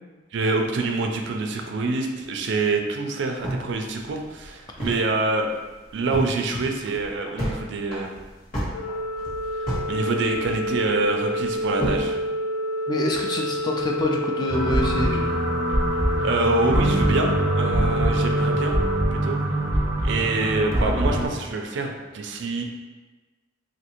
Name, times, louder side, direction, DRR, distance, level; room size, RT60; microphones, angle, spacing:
voice 1, 0.3-5.6 5.9-8.1 9.9-12.2 16.2-18.8 19.1-19.4 20.0-22.6, right 3 dB, 65° right, 3 dB, 0.4 m, -26 dB
sound 1, 3.4-5.1 5.4-5.5 5.8-6.3 6.7-7.6 7.9-9.9 10.2-10.9 11.4-12.1, equal, 45° left, 1.4 m, -30 dB
Organ, 8.7-19.8, equal, 85° left, 0.5 m, -29 dB
voice 2, 12.9-15.5, left 1 dB, 20° left, 0 dB, 0.4 m, -26 dB
sound 2, 14.5-21.3, right 1 dB, 15° right, 0.6 m, -23 dB
3.2 x 2.6 x 2.9 m, 1.2 s
head